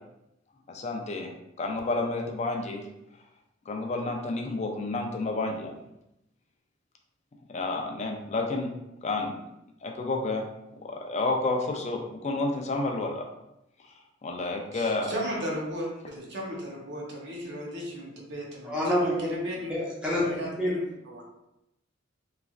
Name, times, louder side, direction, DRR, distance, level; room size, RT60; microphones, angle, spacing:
voice 1, 0.7-1.3 1.6-2.8 3.7-5.7 7.5-8.7 9.0-9.4 9.8-10.5 10.8-13.2 14.2-15.1, left 2 dB, 35° left, 1 dB, 0.4 m, -30 dB
voice 2, 14.7-19.7 20.1-21.2, equal, 65° right, -2 dB, 0.8 m, -35 dB
voice 3, 18.6-19.3 19.7-20.7, left 1 dB, 5° right, -7 dB, 0.9 m, -27 dB
3.1 x 2.4 x 2.3 m, 0.87 s
head